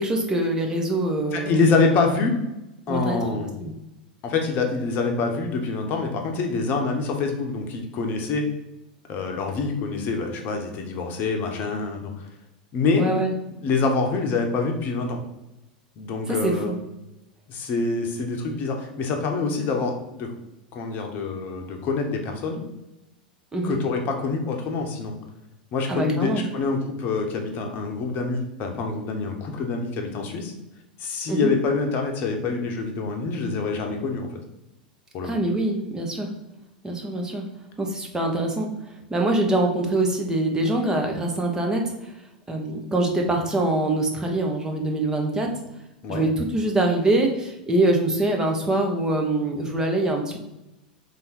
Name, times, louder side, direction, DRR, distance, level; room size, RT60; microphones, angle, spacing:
voice 1, 0.0-1.6 2.9-3.7 13.0-13.3 16.3-16.8 23.5-23.8 25.9-26.4 31.3-31.5 35.2-36.3 36.8-37.4 37.8-38.7 39.1-42.1 42.5-45.5 46.1-50.4, right 2 dB, 15° right, 1 dB, 0.9 m, -24 dB
voice 2, 1.3-2.3 2.9-3.5 4.2-8.5 9.1-12.1 12.7-13.0 13.6-15.2 16.0-16.7 17.5-20.3 20.7-22.6 23.6-25.1 25.7-30.5 31.0-34.3 35.1-35.3 46.0-46.2, left 4 dB, 40° left, 3 dB, 0.9 m, -26 dB
3.7 x 3.3 x 4.3 m, 0.94 s
figure-of-eight pair, 90°, 5 cm